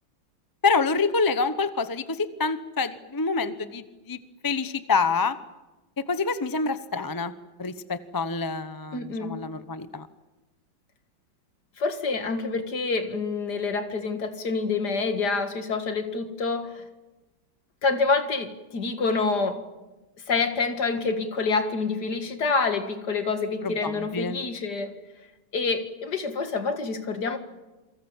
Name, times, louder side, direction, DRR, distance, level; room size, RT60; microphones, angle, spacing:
voice 1, 0.6-5.4 6.1-7.3 7.6-10.1 23.6-24.4, left 4 dB, 20° left, 12 dB, 0.5 m, -27 dB
voice 2, 8.9-9.4 11.8-16.8 17.8-19.6 20.3-24.9 25.5-27.4, left 4 dB, 55° left, 8 dB, 2.5 m, -27 dB
28.0 x 23.5 x 7.4 m, 1.1 s
omnidirectional pair, 2.2 m